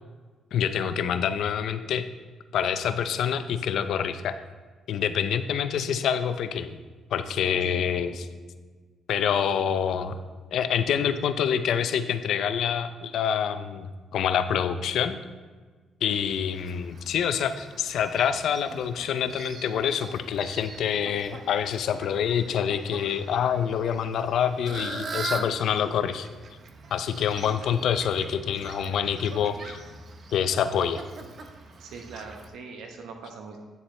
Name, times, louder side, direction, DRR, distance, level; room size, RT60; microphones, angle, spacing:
voice 1, 0.5-2.1 2.5-4.4 4.9-6.8 7.1-8.3 9.1-10.2 10.5-13.9 14.1-15.2 16.0-26.3 26.9-29.8 30.3-31.0, left 8 dB, 75° left, 11 dB, 0.5 m, -26 dB
voice 2, 7.6-8.1 31.8-33.6, right 4 dB, 80° right, 4 dB, 0.9 m, -42 dB
Fowl, 16.1-32.5, right 3 dB, 50° right, 0.7 m, -42 dB
9.2 x 7.1 x 3.2 m, 1.4 s
cardioid pair, 90°, 0 cm